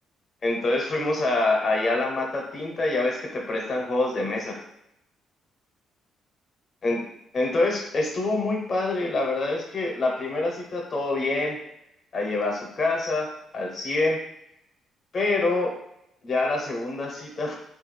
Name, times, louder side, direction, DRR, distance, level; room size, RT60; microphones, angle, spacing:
voice 1, 0.4-4.6 6.8-7.0 7.3-11.6 12.1-14.2 15.1-15.7 16.2-17.6, left 2 dB, 35° left, 0 dB, 0.6 m, -26 dB
3.4 x 2.3 x 3.1 m, 0.80 s
cardioid pair, 140°, 0 cm